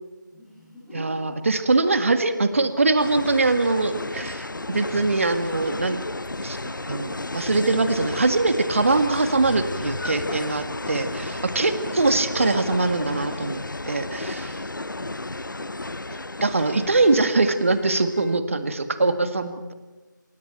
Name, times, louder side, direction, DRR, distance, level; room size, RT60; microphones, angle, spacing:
voice 1, 0.3-1.2 4.1-4.3 14.3-14.4 15.0-15.7, left 1 dB, ahead, -13 dB, 6.6 m, -47 dB
voice 2, 0.9-6.0 6.4-6.6 6.9-14.5 16.4-19.7, right 3 dB, 40° right, 9 dB, 1.9 m, -22 dB
sound 1, 3.0-18.4, left 2 dB, 75° left, 0.9 m, -33 dB
28.5 x 26.0 x 4.5 m, 1.2 s
figure-of-eight pair, 165°, 11 cm